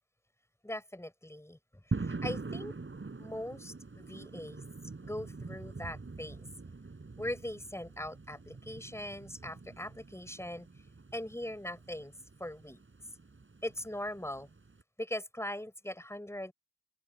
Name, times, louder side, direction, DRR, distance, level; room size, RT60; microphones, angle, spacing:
voice 1, 0.6-1.6 2.0-2.7 3.2-4.6 5.0-6.5 7.2-10.7 11.1-12.1 12.4-12.8 13.6-14.5 15.0-16.5, left 1 dB, 10° left, 6.2 m, -40 dB
sound 1, 1.9-14.8, right 3 dB, 40° right, 7.7 m, -44 dB
open air
cardioid pair, 65°, 30 cm